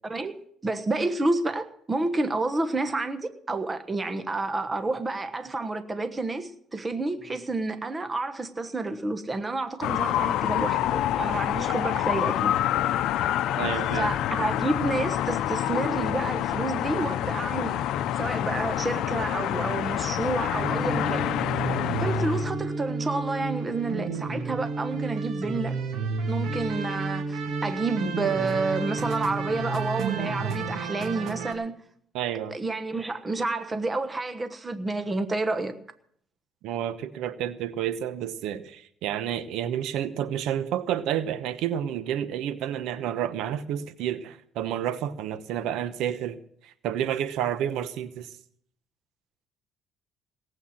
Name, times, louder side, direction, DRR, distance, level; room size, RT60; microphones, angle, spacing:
voice 1, 0.0-0.3 0.6-12.5 13.9-17.8 18.1-21.3 22.0-25.7 26.3-31.7 32.5-35.7, right 3 dB, 20° right, 1.2 m, -29 dB
sound 1, 9.8-22.5, left 12 dB, 75° left, 0.7 m, -27 dB
voice 2, 13.6-14.1 32.1-32.5 36.6-48.3, right 10 dB, 80° right, 1.0 m, -30 dB
sound 2, 20.5-31.5, right 4 dB, 60° right, 2.7 m, -31 dB
18.0 x 8.0 x 7.3 m
cardioid pair, 130°, 0 cm